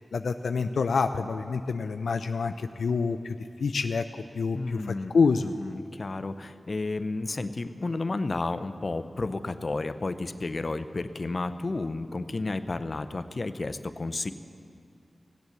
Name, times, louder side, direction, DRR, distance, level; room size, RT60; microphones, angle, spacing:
voice 1, 0.1-3.3 3.6-4.8 5.1-5.5, left 5 dB, 90° left, 8 dB, 0.3 m, -27 dB
voice 2, 4.5-5.1 5.4-14.3, left 3 dB, 55° left, 11 dB, 0.6 m, -32 dB
17.0 x 8.0 x 7.1 m, 2.3 s
cardioid pair, 40°, 0 cm